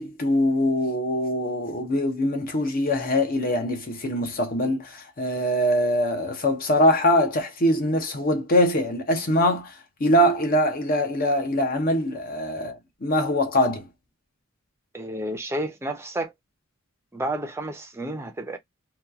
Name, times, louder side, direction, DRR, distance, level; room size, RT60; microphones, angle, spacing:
voice 1, 0.0-13.9, left 1 dB, 45° left, 0.7 m, -23 dB
voice 2, 14.9-16.3 17.1-18.6, right 1 dB, 15° right, 0.5 m, -31 dB
2.9 x 2.3 x 2.3 m
head